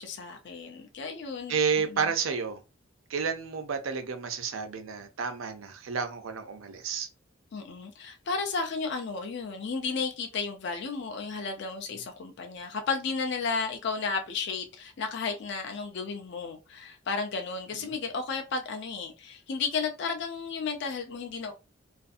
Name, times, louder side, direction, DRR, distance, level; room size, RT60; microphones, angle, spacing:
voice 1, 0.0-2.0 7.5-21.5, left 4 dB, 60° left, 0.4 m, -33 dB
voice 2, 1.5-2.6 3.1-7.1, right 6 dB, 85° right, 0.5 m, -30 dB
2.5 x 2.3 x 2.5 m
head